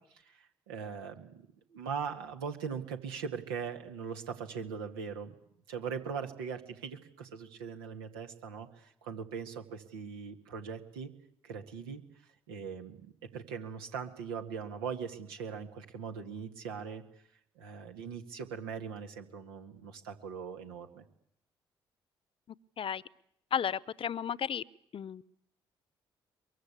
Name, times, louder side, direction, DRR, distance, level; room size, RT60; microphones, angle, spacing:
voice 1, 0.3-1.4 1.7-5.3 5.7-11.1 11.4-12.0 12.5-13.1 13.3-17.0 17.6-21.0, right 6 dB, 90° right, 5 dB, 2.1 m, -40 dB
voice 2, 23.5-24.6 24.9-25.2, left 8 dB, 50° left, 21 dB, 0.9 m, -33 dB
23.0 x 23.0 x 8.4 m, 0.73 s
hypercardioid pair, 45°, 12 cm